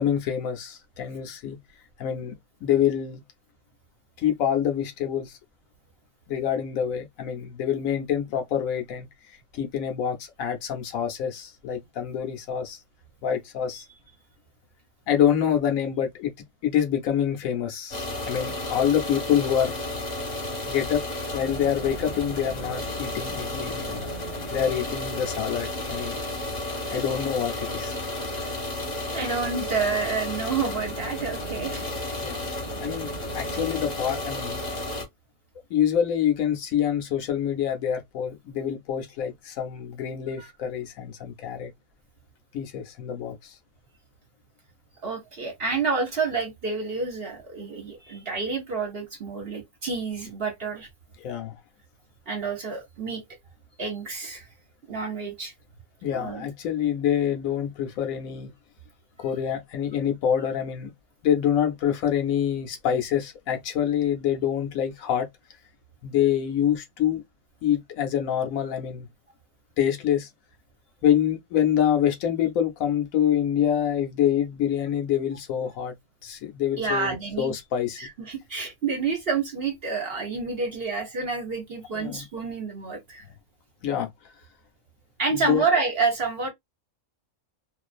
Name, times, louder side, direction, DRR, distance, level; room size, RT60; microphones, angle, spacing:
voice 1, 0.0-1.6 2.0-2.3 2.6-3.2 4.2-5.3 6.3-12.8 13.2-13.8 15.1-16.3 16.6-19.7 20.6-21.0 21.3-24.1 24.5-26.2 26.9-28.0 32.2-32.4 32.8-34.6 35.7-41.7 42.5-43.5 51.2-51.5 56.0-58.5 59.2-60.9 61.2-65.3 66.0-67.2 67.6-69.1 69.8-70.3 71.0-75.9 76.2-78.0 81.9-82.2 83.8-84.1 85.3-85.6, left 9 dB, 75° left, 1.0 m, -26 dB
sound 1, 17.9-35.1, left 1 dB, 35° left, 0.9 m, -32 dB
voice 2, 29.1-31.9 40.4-40.5 45.0-50.9 52.3-53.2 53.8-54.5 54.9-55.5 56.1-56.5 76.8-77.5 78.0-83.2 85.2-86.5, right 4 dB, 50° right, 0.8 m, -29 dB
2.4 x 2.4 x 2.4 m
omnidirectional pair, 1.5 m